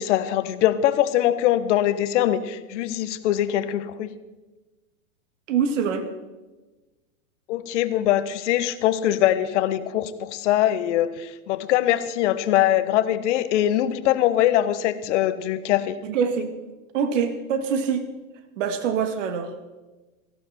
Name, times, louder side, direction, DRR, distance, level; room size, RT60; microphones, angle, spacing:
voice 1, 0.0-4.1 7.5-16.0, left 12 dB, 55° left, 12 dB, 1.3 m, -22 dB
voice 2, 5.5-6.1 16.0-16.5 16.9-18.1 18.6-19.5, right 6 dB, 60° right, 8 dB, 2.2 m, -24 dB
17.5 x 15.5 x 4.4 m, 1.2 s
hypercardioid pair, 105°, 42 cm